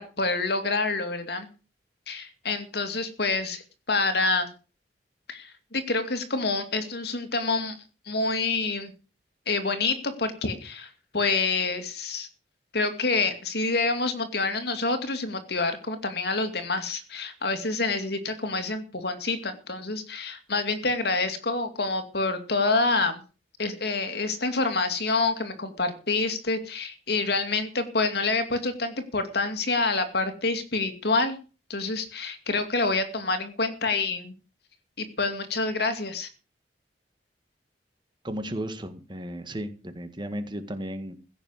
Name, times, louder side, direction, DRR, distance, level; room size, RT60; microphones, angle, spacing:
voice 1, 0.0-1.5 2.1-3.6 3.9-4.5 5.3-7.8 8.1-8.9 9.5-12.3 12.7-23.2 23.6-31.4 31.7-34.3 35.0-36.3, left 3 dB, 65° left, 8 dB, 2.5 m, -27 dB
voice 2, 38.2-41.1, equal, 25° right, 9 dB, 1.8 m, -34 dB
16.0 x 6.6 x 8.1 m, 0.36 s
head